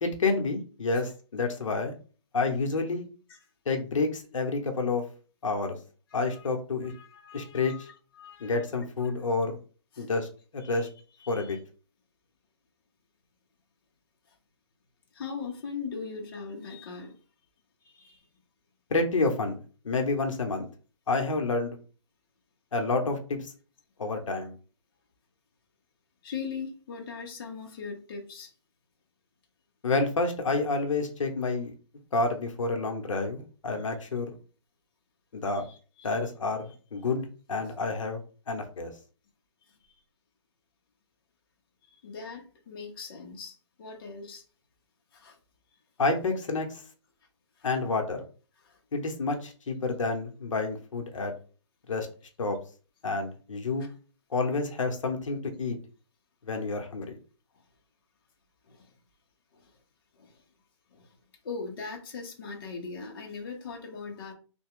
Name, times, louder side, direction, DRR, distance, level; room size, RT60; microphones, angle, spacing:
voice 1, 0.0-1.9 2.3-3.1 3.7-5.0 5.4-5.8 6.1-6.9 7.3-7.7 8.4-9.6 10.0-10.3 10.5-10.9 11.3-11.6 18.9-19.6 19.8-20.7 21.1-21.8 22.7-23.5 24.0-24.5 29.8-31.7 32.1-34.4 35.3-35.6 36.0-38.2 38.5-38.9 46.0-46.8 47.6-48.2 48.9-51.3 51.9-52.1 52.4-52.6 53.0-53.9 54.3-55.8 56.4-57.2, left 3 dB, 75° left, 0.9 m, -29 dB
voice 2, 6.1-6.4 6.9-8.6 9.0-9.1 9.9-10.1 10.6-10.9 11.2-11.6 15.1-17.1 17.8-18.2 26.2-28.5 35.5-36.2 42.0-44.4 45.1-45.4 47.6-47.7 48.6-48.8 53.8-53.9 58.7-58.9 59.5-59.7 60.2-60.3 60.9-61.1 61.4-64.3, left 5 dB, 45° left, 0.8 m, -40 dB
3.3 x 2.2 x 3.6 m
hypercardioid pair, 155°, 16 cm